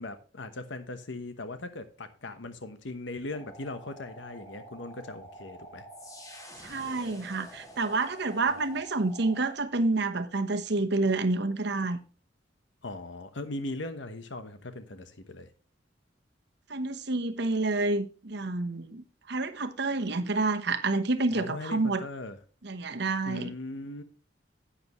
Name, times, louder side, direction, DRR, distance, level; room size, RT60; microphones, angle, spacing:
voice 1, 0.0-5.8 12.8-15.5 21.3-22.4 23.2-24.0, left 2 dB, 80° left, 1.1 m, -39 dB
sound 1, 3.3-9.6, right 1 dB, 20° left, 2.3 m, -48 dB
voice 2, 6.6-12.0 16.7-22.0 22.6-23.5, right 3 dB, 65° right, 1.1 m, -29 dB
11.0 x 8.7 x 3.1 m
head